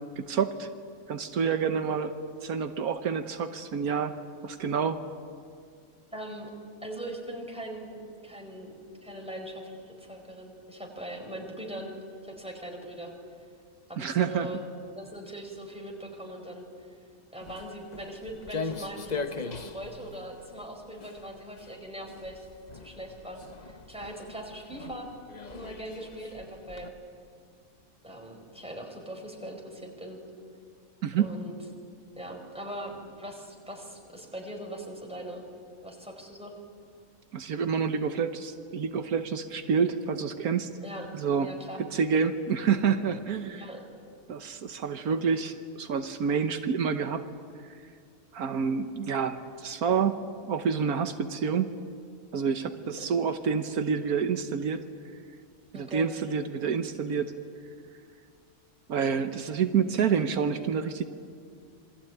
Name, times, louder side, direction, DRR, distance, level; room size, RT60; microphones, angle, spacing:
voice 1, 0.2-0.7 1.1-2.1 2.4-4.2 4.4-5.0 14.0-14.5 31.0-31.3 37.3-40.7 41.1-41.5 41.9-43.6 44.3-47.2 48.3-51.7 52.3-54.9 55.7-57.3 58.9-61.0, right 6 dB, 80° right, 8 dB, 1.5 m, -28 dB
voice 2, 6.1-6.5 6.8-11.9 12.2-13.1 13.9-14.6 15.0-16.9 17.3-22.5 22.7-25.1 25.4-26.9 28.0-30.2 31.2-31.6 32.1-35.4 35.8-36.5 40.8-41.1 41.4-41.8 43.5-43.9 52.6-52.7 53.0-53.1 55.7-56.1, right 1 dB, 5° right, 1 dB, 4.7 m, -41 dB
Walk footsteps, 17.4-26.9, left 4 dB, 35° left, 0.9 m, -40 dB
27.0 x 22.5 x 9.2 m, 2.2 s
omnidirectional pair, 1.6 m